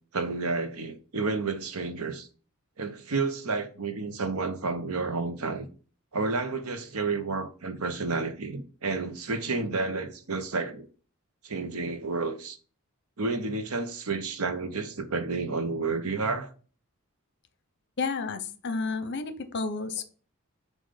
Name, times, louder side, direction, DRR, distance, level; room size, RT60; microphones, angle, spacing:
voice 1, 0.1-2.3 2.8-5.7 6.1-10.9 11.4-12.6 13.2-16.5, right 3 dB, 80° right, 0.9 m, -30 dB
voice 2, 18.0-20.0, left 4 dB, 50° left, 0.8 m, -31 dB
7.6 x 2.6 x 5.1 m
head